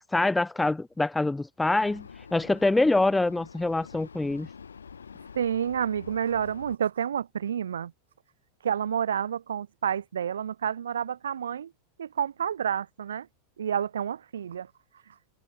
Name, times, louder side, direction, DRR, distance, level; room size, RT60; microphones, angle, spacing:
voice 1, 0.1-2.0 2.3-4.5, left 2 dB, 5° left, 0.7 m, -25 dB
Vehicle, 1.8-6.8, left 6 dB, 70° left, 3.4 m, -47 dB
voice 2, 5.3-7.9 8.6-11.7 12.0-13.3 13.6-14.7, right 8 dB, 65° right, 2.1 m, -29 dB
figure-of-eight pair, 90°, 0 cm